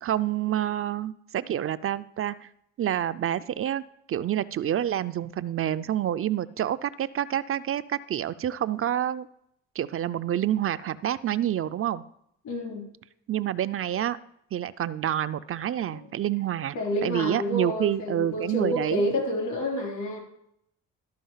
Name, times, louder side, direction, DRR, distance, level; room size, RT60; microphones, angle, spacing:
voice 1, 0.0-2.5 2.8-9.3 9.8-12.0 13.3-14.2 14.5-16.8 17.0-19.0, right 11 dB, 45° right, 14 dB, 0.5 m, -28 dB
voice 2, 12.4-12.9 15.9-16.0 16.8-20.2, left 1 dB, 75° left, 0 dB, 3.6 m, -29 dB
12.5 x 5.0 x 5.6 m, 0.74 s
cardioid pair, 90°, 30 cm